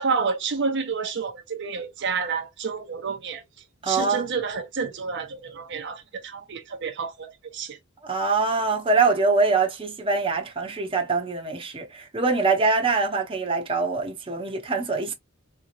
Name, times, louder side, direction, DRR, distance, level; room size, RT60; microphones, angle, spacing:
voice 1, 0.0-3.4 3.8-7.8, right 5 dB, 60° right, 0.7 m, -29 dB
voice 2, 3.8-4.3 8.0-15.1, right 4 dB, 25° right, 0.8 m, -24 dB
3.7 x 2.9 x 2.4 m
head